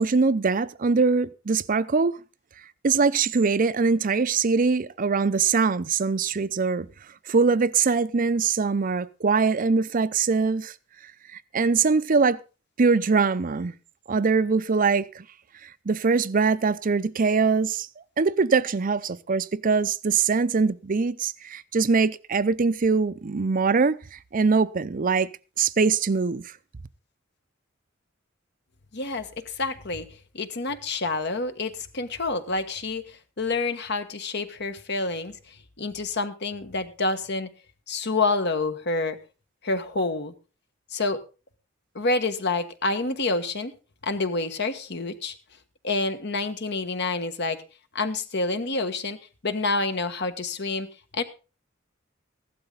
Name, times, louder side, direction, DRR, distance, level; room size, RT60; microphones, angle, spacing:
voice 1, 0.0-2.2 2.8-6.9 7.3-10.7 11.3-12.4 12.8-13.7 14.1-15.2 15.6-17.9 18.2-25.3 25.6-26.5, right 4 dB, 45° right, 0.6 m, -22 dB
voice 2, 28.9-29.3 29.6-30.0 30.3-35.3 35.8-37.5 37.9-39.2 39.6-40.3 40.9-41.2 41.9-43.7 44.0-45.3 45.8-47.6 47.9-49.2 49.4-50.9 51.1-51.2, left 3 dB, 60° left, 1.4 m, -28 dB
15.0 x 12.0 x 3.9 m
head